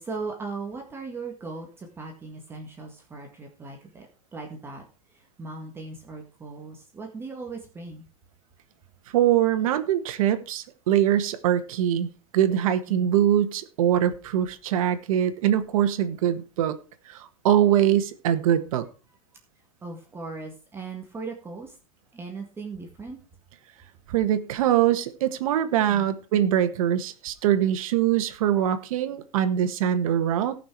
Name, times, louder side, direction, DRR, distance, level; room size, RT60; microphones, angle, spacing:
voice 1, 0.0-8.1 12.9-13.1 19.8-21.8 22.1-23.2 25.8-26.1, right 4 dB, 15° right, 1 dB, 1.7 m, -38 dB
voice 2, 9.1-12.1 12.3-16.8 17.1-18.9 24.1-30.6, right 10 dB, 70° right, 10 dB, 1.7 m, -23 dB
17.5 x 6.1 x 4.7 m, 0.34 s
supercardioid pair, 155°, 18 cm